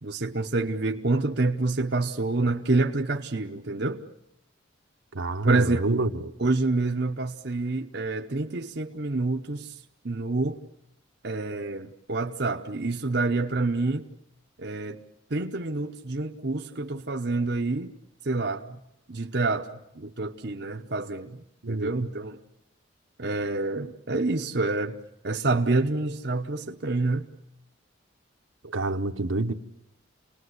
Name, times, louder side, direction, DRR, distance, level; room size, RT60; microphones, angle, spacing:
voice 1, 0.0-4.0 5.4-6.0 6.4-9.7 10.0-10.6 11.2-14.1 14.6-15.0 15.3-17.9 18.2-18.8 19.1-21.4 21.7-22.4 23.2-25.0 25.2-27.3, right 3 dB, 55° right, 0.9 m, -27 dB
voice 2, 5.1-6.3 21.6-22.1 28.6-29.5, right 2 dB, 80° right, 1.2 m, -28 dB
28.5 x 20.0 x 8.1 m
head